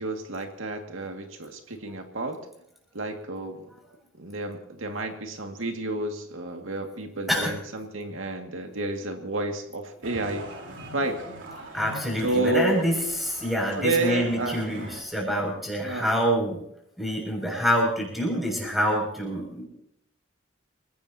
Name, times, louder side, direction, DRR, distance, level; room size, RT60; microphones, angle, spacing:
voice 1, 0.0-2.4 2.9-3.7 4.2-10.5 10.9-11.2 12.2-12.8 13.7-14.7 15.8-16.1, right 2 dB, 85° right, 3 dB, 2.1 m, -30 dB
sound 1, 10.0-15.0, right 1 dB, 70° right, 3.7 m, -42 dB
voice 2, 11.7-16.6 17.0-19.7, equal, ahead, -1 dB, 6.6 m, -26 dB
28.0 x 17.5 x 2.9 m, 0.76 s
head